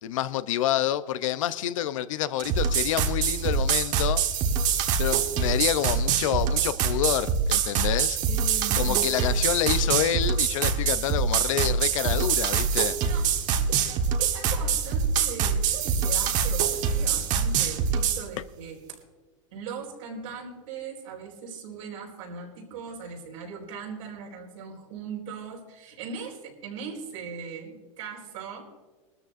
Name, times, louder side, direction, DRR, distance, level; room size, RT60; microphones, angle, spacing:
voice 1, 0.0-4.2 5.0-8.2 8.7-13.0, left 11 dB, 80° left, 0.7 m, -28 dB
sound 1, 2.4-18.2, right 6 dB, 50° right, 1.4 m, -25 dB
voice 2, 8.3-9.1 13.0-13.3 13.6-19.0 19.5-28.7, right 6 dB, 85° right, 4.3 m, -39 dB
21.0 x 13.5 x 2.6 m
supercardioid pair, 120°, 16 cm